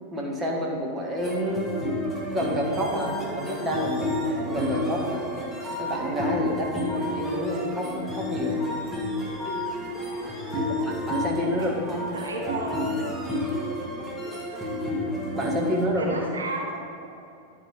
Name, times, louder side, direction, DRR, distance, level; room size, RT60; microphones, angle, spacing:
voice 1, 0.1-1.8 2.3-5.3 5.8-8.6 10.8-12.0 15.3-16.3, equal, 20° right, -2 dB, 1.3 m, -29 dB
sound 1, 1.2-15.9, left 1 dB, 5° right, 1.2 m, -30 dB
Piano, 4.6-6.5, right 2 dB, 20° left, 1.5 m, -42 dB
voice 2, 10.4-11.0 11.4-11.8 12.1-13.0 15.7-16.7 17.0-17.2, right 2 dB, 75° right, -1 dB, 0.9 m, -34 dB
10.0 x 3.8 x 4.9 m, 2.6 s
figure-of-eight pair, 90°, 0 cm